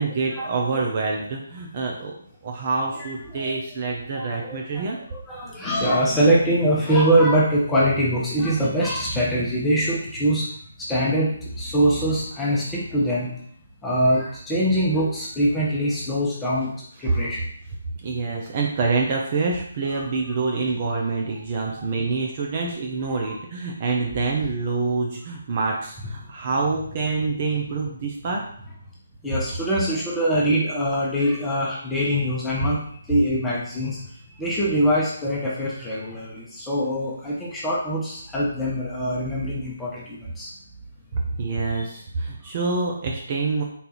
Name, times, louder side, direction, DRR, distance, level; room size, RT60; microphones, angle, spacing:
voice 1, 0.0-2.2 2.4-5.0 18.0-28.4 41.1-43.6, right 4 dB, 40° right, -1 dB, 0.7 m, -26 dB
voice 2, 3.0-3.6 4.1-10.5 10.8-13.3 13.8-16.7 17.0-17.4 19.9-20.1 21.8-21.9 29.2-34.0 34.4-40.5 41.7-41.8, right 1 dB, 10° left, -6 dB, 0.9 m, -23 dB
4.0 x 2.8 x 3.9 m, 0.62 s
figure-of-eight pair, 145°, 0 cm